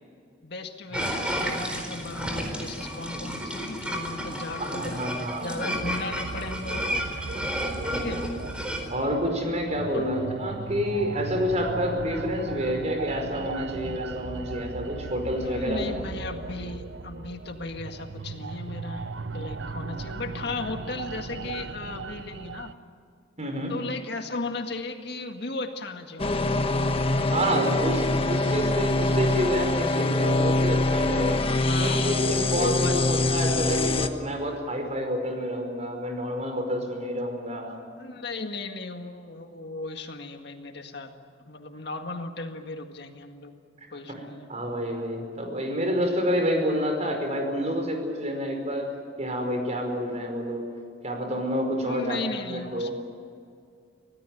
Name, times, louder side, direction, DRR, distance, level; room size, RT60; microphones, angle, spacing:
voice 1, 0.4-5.0 5.4-7.1 7.9-8.2 9.9-10.1 15.4-19.1 19.3-22.7 23.7-27.0 27.8-28.0 31.5-33.1 38.0-41.1 41.4-43.5 43.9-44.5 51.8-52.9, left 3 dB, 65° left, 5 dB, 1.9 m, -36 dB
sound 1, 0.9-8.9, equal, 5° right, 4.3 m, -32 dB
voice 2, 0.9-1.3 4.6-5.5 7.9-8.2 8.9-16.0 23.4-23.8 27.3-31.5 31.8-37.8 44.1-44.2 44.5-48.9 49.2-50.6 51.0-52.2 52.5-52.9, equal, 40° right, 3 dB, 5.2 m, -28 dB
sound 2, 5.7-22.7, right 4 dB, 70° right, 0.7 m, -37 dB
sound 3, 26.2-34.1, left 2 dB, 30° left, 1.3 m, -24 dB
26.0 x 18.0 x 9.2 m, 2.3 s
head